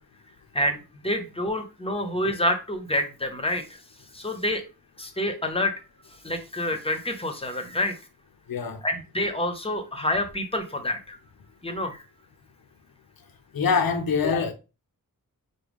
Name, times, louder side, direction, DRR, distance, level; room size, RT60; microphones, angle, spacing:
voice 1, 1.0-3.8 4.1-4.6 5.0-5.7 6.2-7.9 8.8-11.2 11.6-12.0, left 1 dB, 15° left, 0.8 m, -27 dB
voice 2, 8.5-8.8 13.5-14.5, left 5 dB, 80° left, 0.7 m, -24 dB
4.9 x 2.2 x 3.5 m
wide cardioid pair, 75°, 35 cm